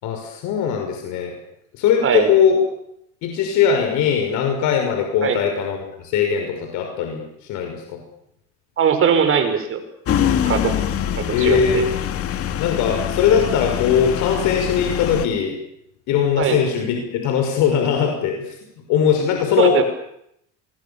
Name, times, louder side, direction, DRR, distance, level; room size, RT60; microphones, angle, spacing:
voice 1, 0.0-1.3 1.7-2.6 3.2-8.0 11.3-11.8 12.6-15.6 16.1-18.5 18.9-19.8, left 8 dB, 65° left, 3 dB, 6.0 m, -20 dB
voice 2, 8.8-9.8 10.4-10.7 11.2-11.8 16.4-16.6 19.6-19.8, right 7 dB, 40° right, 8 dB, 5.3 m, -20 dB
sound 1, 10.1-15.3, left 10 dB, 45° left, 2.3 m, -24 dB
27.0 x 23.0 x 7.2 m, 0.75 s
supercardioid pair, 115°, 32 cm